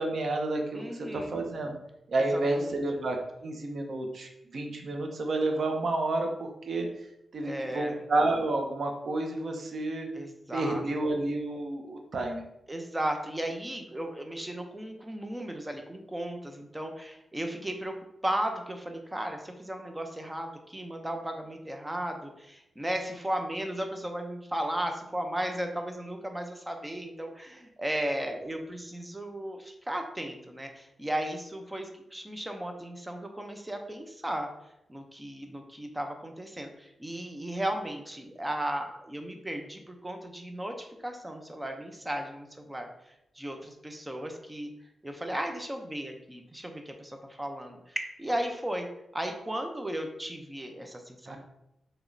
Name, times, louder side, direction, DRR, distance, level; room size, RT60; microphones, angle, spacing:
voice 1, 0.0-1.8 2.1-6.9 7.3-10.1 10.5-12.4 51.3-51.4, right 2 dB, 55° right, 3 dB, 0.7 m, -30 dB
voice 2, 0.7-1.4 2.3-2.8 7.4-8.0 10.1-10.8 12.7-17.9 18.2-34.5 34.9-42.9 43.4-44.7 45.0-48.9 49.1-51.4, right 1 dB, 10° right, 4 dB, 0.5 m, -35 dB
4.9 x 3.0 x 2.6 m, 0.83 s
wide cardioid pair, 120°, 0 cm